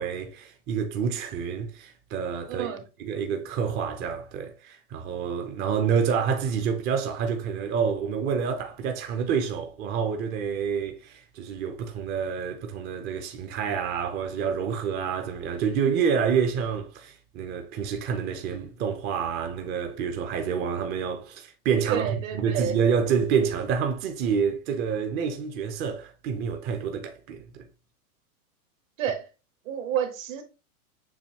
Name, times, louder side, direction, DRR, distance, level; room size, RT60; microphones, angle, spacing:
voice 1, 0.0-2.7 3.0-27.7, right 6 dB, 25° right, 0.5 m, -28 dB
voice 2, 2.5-2.8 21.8-22.8 29.0-29.3 29.6-30.4, right 9 dB, 65° right, 1.3 m, -29 dB
7.0 x 2.7 x 2.8 m
hypercardioid pair, 120°, 44 cm